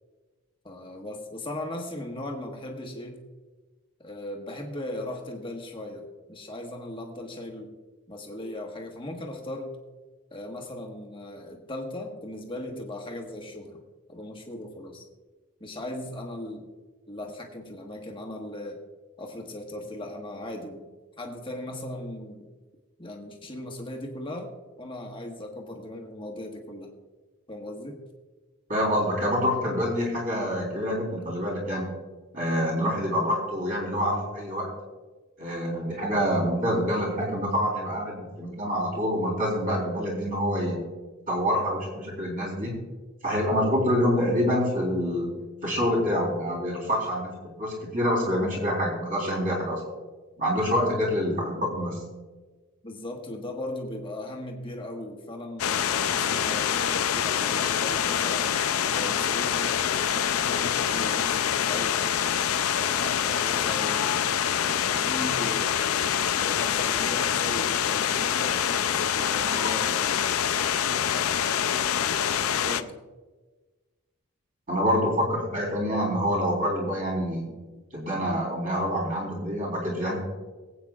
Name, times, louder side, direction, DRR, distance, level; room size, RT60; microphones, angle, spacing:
voice 1, 0.6-3.2 4.0-7.7 8.1-9.7 10.3-13.8 14.1-15.0 15.6-16.7 17.1-18.8 19.2-20.9 21.2-22.5 23.0-24.5 24.8-26.9 27.5-28.0 52.8-58.5 58.9-62.2 62.8-64.2 64.8-65.8 66.3-70.1 71.1-71.5 72.6-73.0, left 1 dB, 25° left, 2 dB, 1.4 m, -38 dB
voice 2, 28.7-31.9 32.3-34.7 35.4-40.8 41.3-42.8 43.2-45.3 45.6-49.8 50.4-52.0 74.7-77.5 77.9-80.2, equal, 40° right, -3 dB, 3.8 m, -26 dB
sound 1, 55.6-72.8, left 9 dB, 75° left, 0.5 m, -25 dB
23.5 x 8.6 x 2.4 m, 1.3 s
head